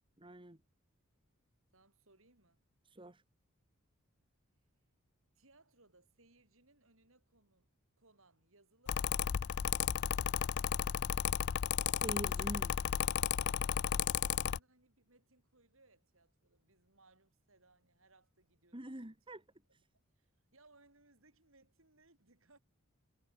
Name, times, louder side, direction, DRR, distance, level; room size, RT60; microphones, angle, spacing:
voice 1, 0.2-0.6 2.9-3.2 12.0-12.7 18.7-19.4, right 1 dB, 25° right, 1.8 m, -44 dB
voice 2, 1.7-2.6 5.3-7.7 8.0-10.2 13.6-19.2 19.7-19.8 20.2-22.6, right 2 dB, 70° right, 6.4 m, -68 dB
Mechanical fan, 8.9-14.6, left 9 dB, 50° left, 0.4 m, -34 dB
head